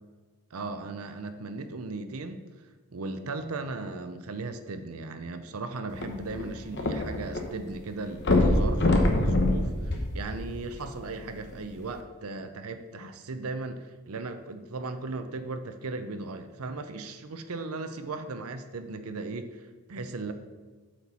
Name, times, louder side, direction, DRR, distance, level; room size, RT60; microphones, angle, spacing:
voice 1, 0.5-2.4 2.9-19.6 19.9-20.3, right 3 dB, 75° right, 9 dB, 0.6 m, -37 dB
sound 1, 5.9-7.4 7.7-7.8 8.2-10.8 11.5-11.6, left 1 dB, 50° left, 1.0 m, -24 dB
8.2 x 4.5 x 5.5 m, 1.4 s
head